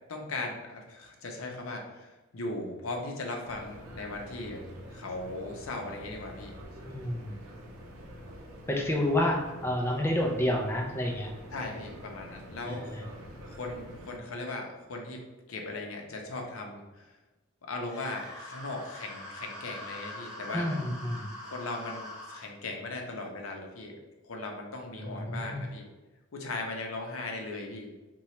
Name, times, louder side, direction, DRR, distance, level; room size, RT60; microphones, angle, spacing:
voice 1, 0.1-6.5 11.5-12.9 13.5-17.1 17.6-20.7 21.4-24.0 24.2-25.9 26.3-27.9, left 2 dB, 70° left, 2 dB, 0.6 m, -38 dB
sound 1, 3.4-14.2, equal, 85° right, 0.6 m, -47 dB
voice 2, 6.9-7.2 8.7-11.3 12.7-12.9 20.5-21.2 24.9-25.6, left 1 dB, 10° left, -1 dB, 0.4 m, -29 dB
sound 2, 17.8-22.5, left 1 dB, 5° right, 1.1 m, -43 dB
2.9 x 2.3 x 4.2 m, 1.1 s
head